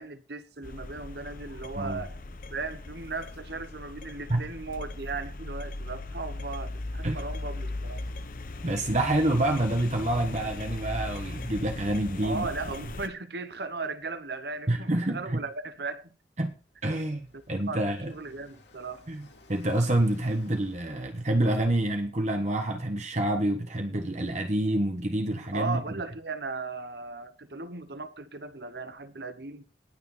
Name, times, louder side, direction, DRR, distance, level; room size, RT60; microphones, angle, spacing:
voice 1, 0.0-2.2 2.5-8.0 12.2-16.1 17.3-17.4 17.7-19.0 25.5-29.6, right 3 dB, 70° right, 1.0 m, -37 dB
sound 1, 0.6-13.1, left 2 dB, 50° left, 0.9 m, -38 dB
voice 2, 8.6-12.5 14.7-15.4 16.4-16.5 16.8-17.2 17.5-18.1 19.1-19.2 19.5-25.8, right 1 dB, 40° right, 1.3 m, -27 dB
Car passing by, 16.6-22.0, left 2 dB, 80° left, 2.9 m, -56 dB
18.5 x 6.9 x 4.2 m
head